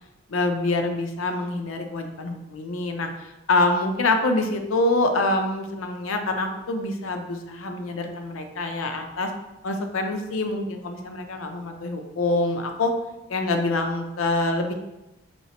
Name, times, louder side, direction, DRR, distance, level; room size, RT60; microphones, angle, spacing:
voice 1, 0.3-9.3 9.6-12.9 13.3-14.7, left 2 dB, 80° left, 5 dB, 0.5 m, -25 dB
4.4 x 3.1 x 2.9 m, 0.95 s
head